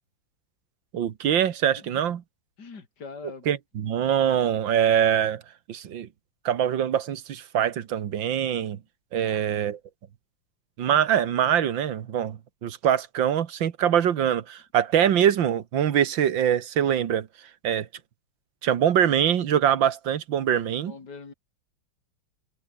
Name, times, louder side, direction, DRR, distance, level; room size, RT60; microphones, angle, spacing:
voice 1, 0.9-2.2 3.5-5.4 5.7-6.1 6.5-8.8 9.1-9.8 10.8-17.3 17.6-17.9 18.6-20.9, right 9 dB, 85° right, 2.0 m, -23 dB
voice 2, 2.6-3.5 9.2-9.5 20.8-21.3, left 4 dB, 60° left, 3.5 m, -43 dB
omnidirectional pair, 2.0 m